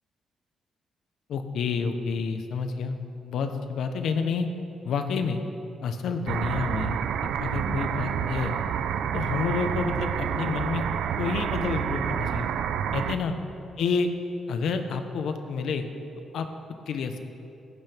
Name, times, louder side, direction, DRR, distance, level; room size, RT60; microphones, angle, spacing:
voice 1, 1.3-3.0 3.2-4.5 4.8-5.4 5.8-7.0 7.4-8.5 9.1-10.8 11.2-12.5 12.9-13.3 13.8-14.1 14.5-15.9 16.3-16.5 16.9-17.2, left 5 dB, 70° left, 7 dB, 1.1 m, -29 dB
sound 1, 6.3-13.2, right 8 dB, 80° right, 0.6 m, -28 dB
16.5 x 16.0 x 3.6 m, 2.7 s
cardioid pair, 155°, 0 cm